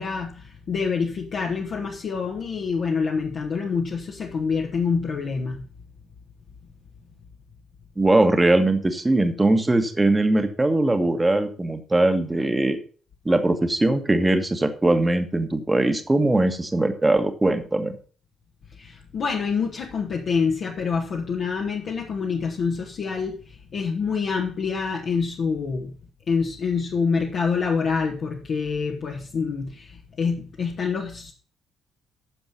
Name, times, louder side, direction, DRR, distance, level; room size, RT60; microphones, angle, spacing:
voice 1, 0.0-5.6 18.8-25.9 26.3-31.3, left 5 dB, 50° left, -1 dB, 1.4 m, -26 dB
voice 2, 8.0-12.8 13.2-17.9, right 2 dB, 20° right, 8 dB, 1.5 m, -21 dB
10.0 x 7.0 x 5.3 m, 0.41 s
figure-of-eight pair, 45°, 0 cm